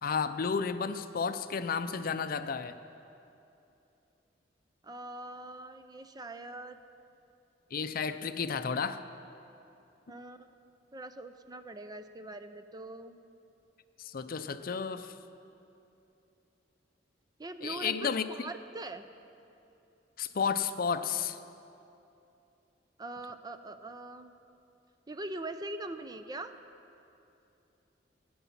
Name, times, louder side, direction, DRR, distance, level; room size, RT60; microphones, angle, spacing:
voice 1, 0.0-2.8 7.7-9.0 14.0-15.1 17.6-18.3 20.2-21.4, left 6 dB, 55° left, 11 dB, 0.5 m, -32 dB
voice 2, 4.8-6.8 10.1-10.5 10.9-13.2 17.4-19.0 23.0-24.3 25.1-26.5, right 2 dB, 20° right, 9 dB, 0.5 m, -42 dB
16.5 x 10.0 x 5.9 m, 2.8 s
head